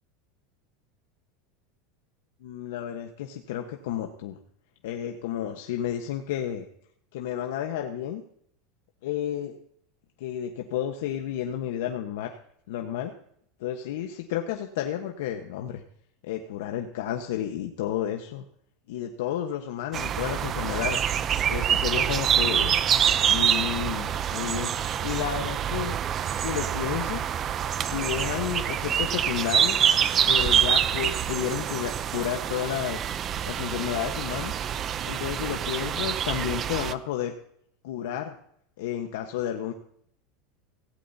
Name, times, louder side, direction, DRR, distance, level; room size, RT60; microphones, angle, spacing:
voice 1, 2.4-4.4 4.8-6.7 7.1-8.2 9.0-9.6 10.2-12.4 12.7-13.1 13.6-15.8 16.2-18.4 18.9-21.1 21.5-22.8 23.2-26.0 26.4-27.3 27.8-29.9 30.3-33.1 33.5-34.5 35.0-37.3 37.8-38.3 38.8-39.7, left 10 dB, 75° left, 4 dB, 1.2 m, -31 dB
sound 1, 19.9-36.9, right 9 dB, 25° right, 0.6 m, -26 dB
17.0 x 16.5 x 2.8 m, 0.67 s
supercardioid pair, 160°, 0 cm